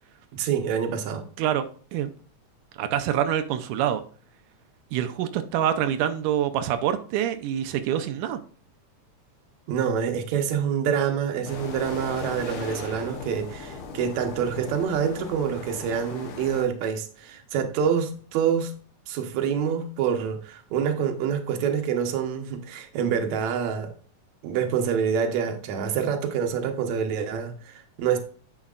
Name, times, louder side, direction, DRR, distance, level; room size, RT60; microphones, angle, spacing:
voice 1, 0.3-1.2 9.7-18.7 19.1-23.9 24.4-28.2, right 7 dB, 70° right, 6 dB, 2.2 m, -26 dB
voice 2, 1.4-2.1 2.8-4.0 4.9-8.4, right 10 dB, 90° right, 9 dB, 2.2 m, -26 dB
sound 1, 11.4-16.6, left 5 dB, 60° left, 1.5 m, -38 dB
9.9 x 6.3 x 2.4 m, 0.43 s
omnidirectional pair, 3.6 m